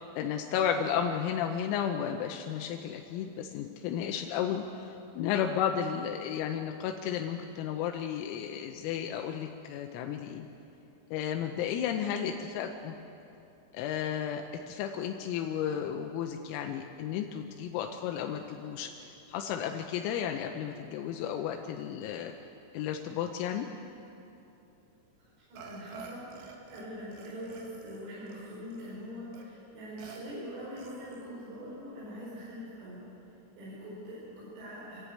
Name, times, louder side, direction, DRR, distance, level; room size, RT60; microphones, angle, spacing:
voice 1, 0.0-10.5 11.1-13.0 13.7-18.9 19.3-22.3 22.7-23.7, left 8 dB, 85° left, 4 dB, 3.6 m, -33 dB
voice 2, 11.9-12.3 25.5-33.0 33.6-35.0, equal, 90° right, -8 dB, 7.6 m, -43 dB
Burping eructation, 25.6-26.9 27.1-28.9 29.3-29.4 30.0-30.2 30.8-31.3, right 5 dB, 65° right, 3.5 m, -49 dB
27.5 x 11.5 x 8.5 m, 2.8 s
omnidirectional pair, 6.0 m